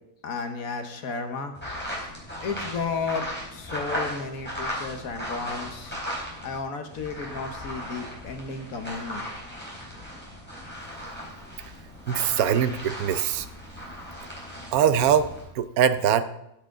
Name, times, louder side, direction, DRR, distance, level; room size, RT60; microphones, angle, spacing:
voice 1, 0.2-1.5 2.4-6.0 6.4-9.2, left 4 dB, 75° left, 6 dB, 1.6 m, -33 dB
sound 1, 1.5-6.6 6.9-15.4, equal, 5° left, 4.0 m, -37 dB
voice 2, 12.1-13.5 14.7-15.3 15.5-16.2, right 8 dB, 85° right, 12 dB, 1.1 m, -22 dB
14.0 x 7.5 x 3.8 m, 0.85 s
omnidirectional pair, 1.5 m